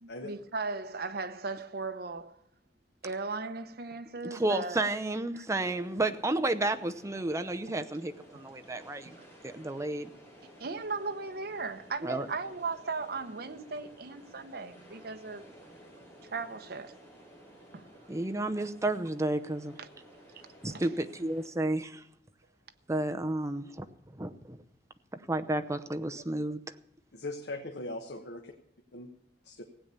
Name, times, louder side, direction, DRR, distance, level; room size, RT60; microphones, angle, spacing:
voice 1, 0.0-2.4 3.0-4.9 5.3-5.4 9.0-9.2 10.4-15.4 16.2-17.0 17.7-17.9 19.8-19.9 20.7-20.9, right 4 dB, 60° right, 0.9 m, -37 dB
voice 2, 4.2-9.1 9.4-10.1 12.0-12.3 18.1-19.8 20.6-22.0 22.9-23.9 24.1-24.6 25.3-26.6, right 2 dB, 15° right, 0.7 m, -31 dB
sound 1, 5.4-21.5, equal, 15° left, 6.0 m, -54 dB
voice 3, 27.1-28.5 28.9-29.1 29.4-29.6, left 2 dB, 70° left, 1.2 m, -39 dB
16.0 x 8.7 x 6.8 m
head